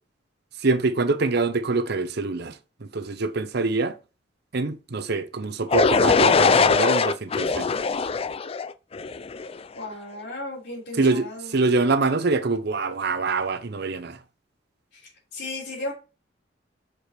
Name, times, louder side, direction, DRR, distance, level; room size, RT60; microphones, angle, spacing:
voice 1, 0.6-4.0 4.5-7.7 11.0-14.2, right 3 dB, 60° right, 0.8 m, -25 dB
sound 1, 5.7-9.6, left 4 dB, 30° left, 0.4 m, -21 dB
voice 2, 9.8-11.6 14.9-15.9, left 2 dB, 60° left, 3.6 m, -35 dB
6.8 x 5.0 x 4.4 m
head